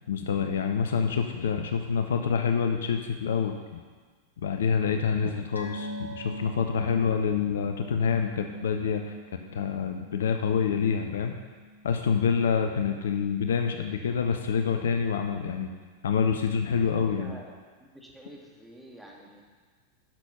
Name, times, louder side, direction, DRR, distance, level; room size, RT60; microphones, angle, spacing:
voice 1, 0.1-3.8 4.4-9.2 9.5-11.3 11.8-15.7 16.0-17.3, left 6 dB, 60° left, 6 dB, 0.7 m, -27 dB
sound 1, 5.5-12.4 12.6-12.9 13.2-13.3, equal, 90° right, 1.1 m, -42 dB
voice 2, 16.8-17.5 17.8-19.4, right 1 dB, 5° right, -2 dB, 1.9 m, -49 dB
10.5 x 6.2 x 5.5 m, 1.5 s
figure-of-eight pair, 90°, 0 cm